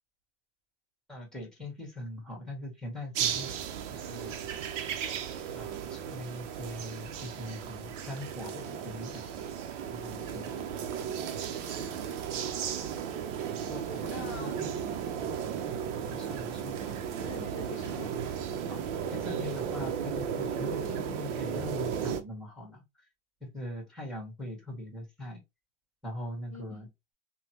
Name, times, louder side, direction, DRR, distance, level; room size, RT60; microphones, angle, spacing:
voice 1, 1.1-3.5 3.9-4.6 5.5-9.3 9.9-10.6 13.7-14.9 15.2-15.3 16.0-16.8 18.7-18.8 19.1-22.8 23.4-25.4 26.0-26.9, left 1 dB, ahead, 1.5 m, -41 dB
sound 1, 3.1-22.2, right 8 dB, 65° right, 0.7 m, -35 dB
voice 2, 10.5-10.8 13.9-14.5 16.8-18.4 26.5-26.9, left 3 dB, 30° left, 0.7 m, -45 dB
3.1 x 2.2 x 2.9 m
hypercardioid pair, 120°, 40 cm